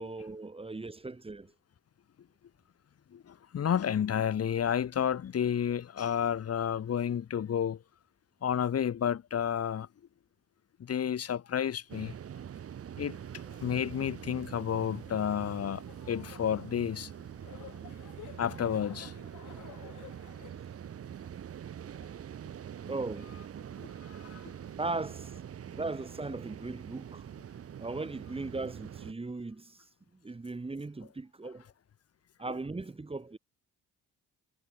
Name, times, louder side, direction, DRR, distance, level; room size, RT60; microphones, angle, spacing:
voice 1, 0.0-1.5 22.9-23.4 24.8-25.3 25.7-27.2 27.8-29.8 30.2-31.6 32.4-33.4, right 3 dB, 20° right, 2.3 m, -38 dB
voice 2, 3.1-7.8 8.4-9.9 10.8-12.1 13.0-13.2 13.6-17.1 18.4-19.1 23.8-24.5, left 8 dB, 55° left, 2.4 m, -31 dB
sound 1, 11.9-29.1, right 9 dB, 50° right, 1.4 m, -44 dB
sound 2, 13.4-20.5, left 13 dB, 80° left, 2.7 m, -53 dB
cardioid pair, 90°, 30 cm